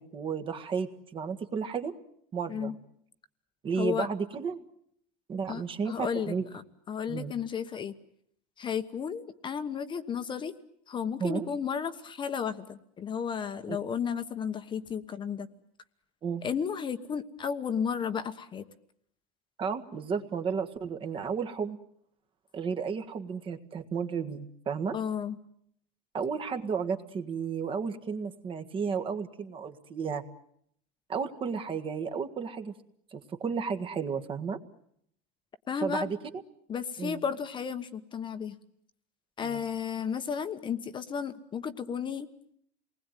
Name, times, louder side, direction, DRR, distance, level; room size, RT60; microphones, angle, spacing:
voice 1, 0.0-1.9 2.3-2.8 3.6-4.6 5.3-6.4 7.1-7.3 11.2-11.5 13.7-13.8 16.2-16.4 19.6-21.8 22.5-25.0 26.1-30.2 31.1-32.7 33.1-34.6 35.8-36.2 37.0-37.2 39.4-39.6, right 6 dB, 25° right, 8 dB, 1.7 m, -33 dB
voice 2, 3.8-4.1 5.5-6.3 6.9-7.9 8.6-10.5 10.9-15.5 16.4-18.6 24.9-25.4 35.7-36.1 36.7-38.5 39.4-42.3, left 7 dB, 25° left, 10 dB, 1.2 m, -33 dB
28.5 x 20.0 x 9.2 m, 0.72 s
supercardioid pair, 150°, 20 cm